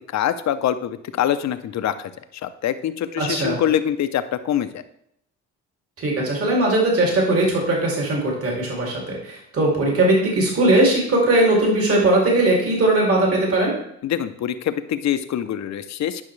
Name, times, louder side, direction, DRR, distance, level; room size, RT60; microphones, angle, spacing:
voice 1, 0.1-2.1 2.4-4.8 14.0-16.2, left 10 dB, 65° left, 11 dB, 0.7 m, -24 dB
voice 2, 3.2-3.6 6.0-13.7, right 1 dB, 50° right, -2 dB, 2.6 m, -19 dB
11.0 x 5.6 x 3.2 m, 0.74 s
cardioid pair, 90°, 30 cm